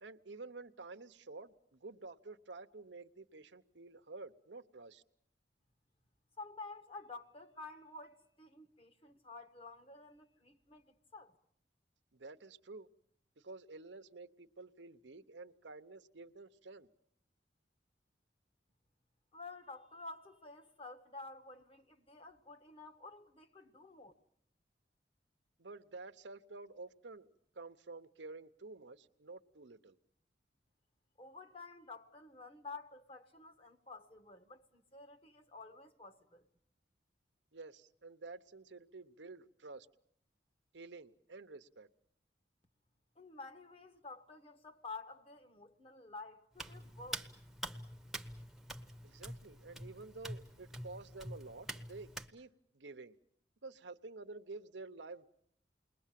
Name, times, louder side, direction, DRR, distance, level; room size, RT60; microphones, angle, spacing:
voice 1, 0.0-5.0 12.1-12.9 13.4-16.9 25.6-30.0 37.5-39.9 40.7-41.9 49.0-53.2 53.6-55.3, right 3 dB, 75° right, 0.9 m, -50 dB
voice 2, 6.4-11.3 19.3-24.1 31.2-36.4 43.1-47.2, left 3 dB, 30° left, 1.5 m, -51 dB
Hands, 46.5-52.3, right 1 dB, ahead, 1.1 m, -46 dB
29.0 x 21.0 x 7.5 m
head